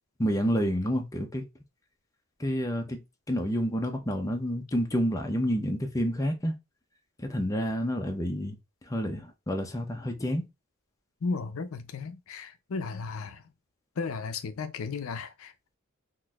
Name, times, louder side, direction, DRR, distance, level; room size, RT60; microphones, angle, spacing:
voice 1, 0.2-1.4 2.4-6.5 7.2-10.4, equal, 15° left, 0.5 m, -29 dB
voice 2, 11.2-13.4 14.0-15.5, left 4 dB, 65° left, 0.5 m, -34 dB
3.8 x 2.6 x 2.3 m
head